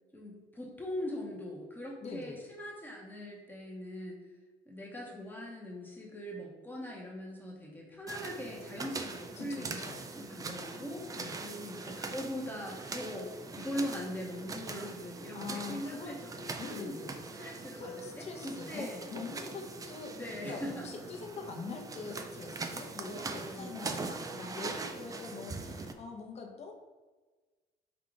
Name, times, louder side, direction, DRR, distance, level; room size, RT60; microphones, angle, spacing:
voice 1, 0.1-4.2 4.7-9.8 10.2-17.0 17.4-19.1 20.1-20.9 22.9-23.7, equal, 10° left, -2 dB, 0.8 m, -41 dB
voice 2, 2.0-2.4 9.3-10.0 11.1-11.4 15.3-16.2 16.6-17.2 17.7-20.1 20.5-26.7, left 4 dB, 40° left, 1 dB, 0.8 m, -43 dB
sound 1, 8.1-25.9, right 3 dB, 20° right, 0.3 m, -42 dB
4.8 x 2.4 x 3.8 m, 1.3 s
cardioid pair, 110°, 17 cm